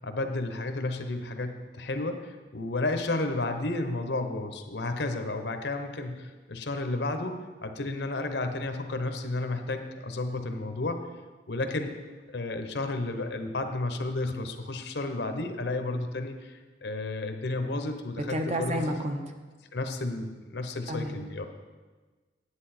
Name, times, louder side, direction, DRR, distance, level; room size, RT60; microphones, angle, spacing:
voice 1, 0.0-11.0 11.5-11.9 12.3-18.9 19.7-21.4, left 2 dB, 70° left, 7 dB, 0.9 m, -32 dB
voice 2, 18.3-19.2 20.9-21.2, equal, 40° right, 4 dB, 0.8 m, -30 dB
9.8 x 8.6 x 4.3 m, 1.3 s
head